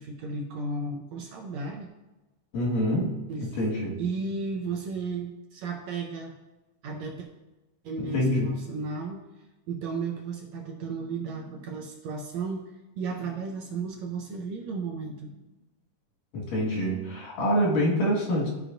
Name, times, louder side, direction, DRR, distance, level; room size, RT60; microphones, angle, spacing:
voice 1, 0.0-1.9 3.3-3.6 4.0-6.3 6.8-7.3 7.8-9.2 9.7-15.5, right 4 dB, 75° right, 1 dB, 1.7 m, -34 dB
voice 2, 2.5-3.2 3.6-4.0 8.0-8.6 16.3-18.5, equal, 90° left, -4 dB, 3.5 m, -26 dB
13.0 x 4.9 x 2.6 m, 1.1 s
omnidirectional pair, 3.7 m